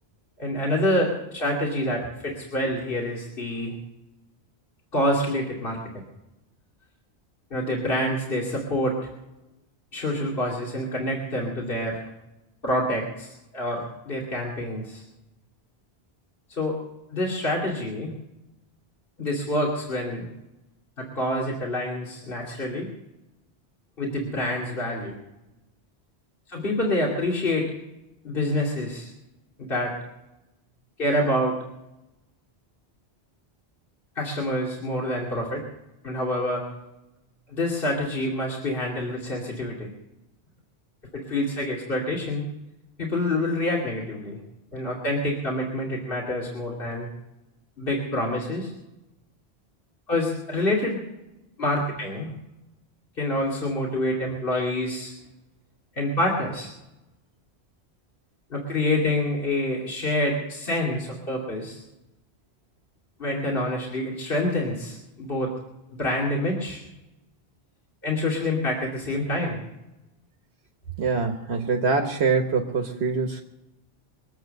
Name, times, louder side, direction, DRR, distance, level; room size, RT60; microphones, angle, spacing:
voice 1, 0.4-3.7 4.9-5.8 7.5-9.0 9.9-12.0 12.6-15.0 16.5-16.8 17.1-18.1 19.2-20.3 21.0-22.9 24.0-25.2 26.5-27.7 28.2-29.1 29.6-29.9 31.0-31.6 34.2-35.6 36.0-36.6 37.5-39.9 41.1-42.4 43.0-44.4 44.7-47.1 47.8-48.7 50.1-51.0 51.6-52.3 53.2-55.1 56.0-56.7 58.5-61.8 63.2-65.5 65.9-66.8 68.0-69.6, left 1 dB, 60° left, -3 dB, 2.8 m, -27 dB
voice 2, 71.0-73.4, right 4 dB, 80° right, 3 dB, 1.5 m, -24 dB
24.0 x 8.2 x 6.5 m, 0.95 s
omnidirectional pair, 1.1 m